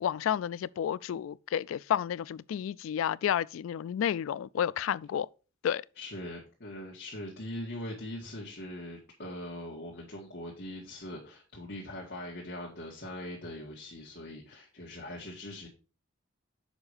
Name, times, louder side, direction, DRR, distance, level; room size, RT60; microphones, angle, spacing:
voice 1, 0.0-5.3 5.6-5.8, left 9 dB, 85° left, 0.3 m, -31 dB
voice 2, 6.0-15.7, left 1 dB, 55° left, 1.8 m, -41 dB
7.2 x 5.5 x 4.9 m
head